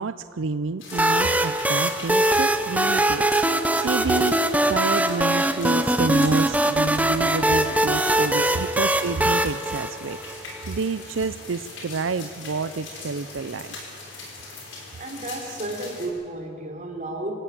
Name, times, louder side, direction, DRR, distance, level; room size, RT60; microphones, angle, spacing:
voice 1, 0.0-3.3 3.8-4.4 4.7-13.8, right 4 dB, 75° right, 12 dB, 0.5 m, -29 dB
sound 1, 0.8-16.1, left 3 dB, 70° left, 5.6 m, -41 dB
sound 2, 0.9-10.6, right 1 dB, 10° right, 0.9 m, -22 dB
voice 2, 15.0-17.4, right 2 dB, 40° right, 2 dB, 3.7 m, -32 dB
26.0 x 14.5 x 9.0 m, 2.9 s
head